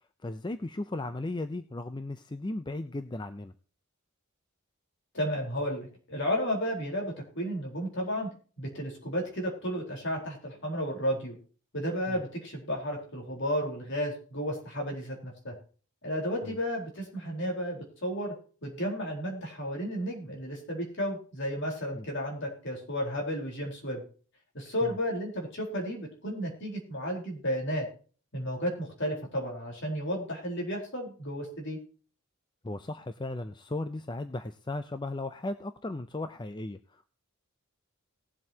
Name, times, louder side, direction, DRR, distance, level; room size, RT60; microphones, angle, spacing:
voice 1, 0.2-3.5 12.1-12.2 16.4-16.6 22.0-22.1 24.8-25.0 32.6-37.1, left 2 dB, 20° left, 10 dB, 0.5 m, -36 dB
voice 2, 5.1-8.3 8.6-11.3 11.7-15.5 16.0-18.3 18.6-24.0 24.5-27.9 28.3-31.8, equal, 55° left, 0 dB, 4.2 m, -33 dB
19.5 x 7.7 x 2.9 m, 0.40 s
head